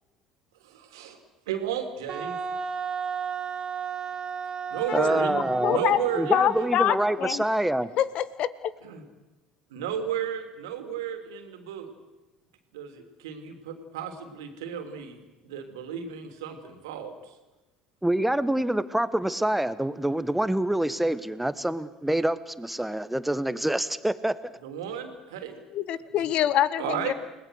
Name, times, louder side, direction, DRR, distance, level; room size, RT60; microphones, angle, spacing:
voice 1, 0.6-1.2 1.5-2.3 4.7-6.7 8.8-9.1 9.7-11.9 12.7-17.4 24.6-25.6 25.9-26.3 26.8-27.1, right 8 dB, 75° right, 6 dB, 3.2 m, -33 dB
Wind instrument woodwind instrument, 2.1-7.6, right 6 dB, 35° right, 1.5 m, -34 dB
voice 2, 4.9-5.8 6.2-7.9 18.0-24.3, right 1 dB, 5° right, 14 dB, 1.4 m, -26 dB
voice 3, 5.6-6.0 6.3-7.4 8.0-8.5 25.7-27.1, left 11 dB, 55° left, 16 dB, 1.2 m, -25 dB
30.0 x 19.5 x 6.5 m, 1.1 s
figure-of-eight pair, 60°, 2 cm